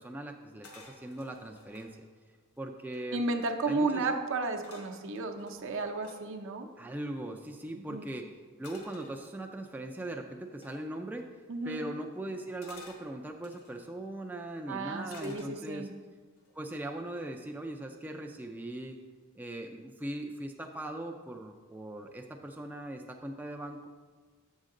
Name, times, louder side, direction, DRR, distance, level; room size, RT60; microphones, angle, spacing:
voice 1, 0.0-2.0 2.6-3.2 3.7-4.1 6.8-8.3 8.6-11.3 11.6-15.9 16.5-19.0 19.3-23.9, right 1 dB, 10° right, 2 dB, 0.3 m, -40 dB
sound 1, 0.6-1.9 2.5-2.6 2.8-3.4 4.6-6.2 8.6-9.7 10.6-10.9 12.6-13.8 15.1-15.9 16.4-16.7, left 3 dB, 80° left, 1.3 m, -54 dB
voice 2, 3.1-6.7 7.8-8.1 11.5-11.8 14.7-15.9, right 3 dB, 60° right, 4 dB, 0.7 m, -33 dB
8.2 x 6.3 x 3.8 m, 1.5 s
head